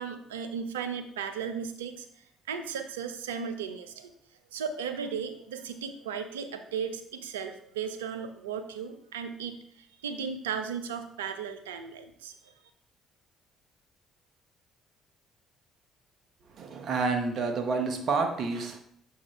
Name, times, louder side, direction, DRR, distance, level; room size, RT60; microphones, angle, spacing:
voice 1, 0.0-2.1 2.5-4.1 4.5-12.4, right 6 dB, 90° right, 8 dB, 0.5 m, -36 dB
voice 2, 16.6-18.8, right 4 dB, 55° right, 5 dB, 0.9 m, -29 dB
7.3 x 4.6 x 3.2 m, 0.66 s
hypercardioid pair, 55°, 0 cm